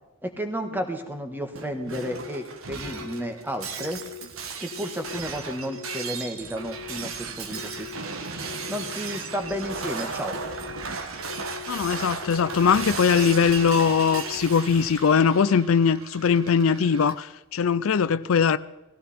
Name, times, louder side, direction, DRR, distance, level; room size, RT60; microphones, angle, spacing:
voice 1, 0.2-4.0 4.6-7.9 8.7-10.4, equal, 10° right, 1.5 m, -32 dB
Shatter, 1.5-17.1, right 4 dB, 75° right, 1.6 m, -35 dB
sound 1, 1.9-2.4 2.8-3.3 3.8-4.3 4.7-5.2 5.7-6.2 6.6-7.1 7.5-8.0 8.5-9.0 9.4-9.9 10.3-10.8 11.3-11.8 12.2-12.7 13.2-13.7 14.1-14.6, left 9 dB, 55° left, 1.9 m, -41 dB
voice 2, 11.7-18.6, left 6 dB, 70° left, 0.5 m, -21 dB
18.0 x 15.5 x 4.3 m
head